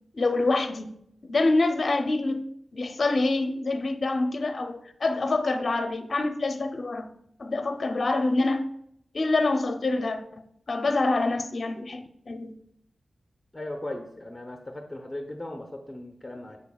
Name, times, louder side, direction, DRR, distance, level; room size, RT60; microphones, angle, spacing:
voice 1, 0.1-0.9 1.2-2.5 2.7-7.1 7.4-8.7 9.1-12.6, left 2 dB, 55° left, 7 dB, 0.5 m, -26 dB
voice 2, 13.5-16.6, left 1 dB, 15° left, 3 dB, 0.8 m, -37 dB
7.2 x 6.7 x 2.3 m, 0.72 s
cardioid pair, 55°, 0 cm